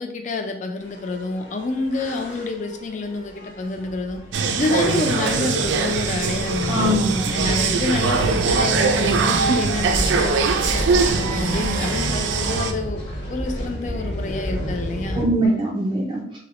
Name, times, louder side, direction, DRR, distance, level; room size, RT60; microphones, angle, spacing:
voice 1, 0.0-4.2 4.6-7.0 7.3-13.0 13.3-15.2, left 3 dB, 40° left, 4 dB, 0.3 m, -28 dB
sound 1, 0.8-15.3, equal, 90° left, 1.0 m, -31 dB
sound 2, 4.3-12.7, right 4 dB, 90° right, 0.4 m, -22 dB
voice 2, 6.7-7.4 15.1-16.4, right 1 dB, 25° right, -3 dB, 0.5 m, -22 dB
3.9 x 2.0 x 2.9 m, 0.70 s
head